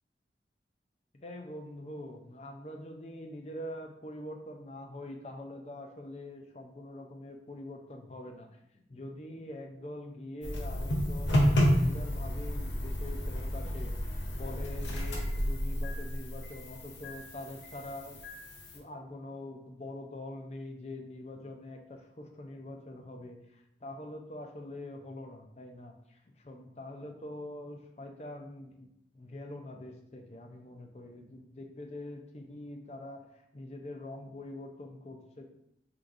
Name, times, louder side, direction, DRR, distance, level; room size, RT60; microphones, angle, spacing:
voice 1, 1.1-8.5 8.7-18.2 18.7-28.9 29.1-35.5, left 1 dB, 35° left, 3 dB, 0.5 m, -44 dB
sound 1, 10.4-18.8, equal, 85° left, 0.9 m, -31 dB
5.9 x 3.2 x 2.5 m, 0.79 s
head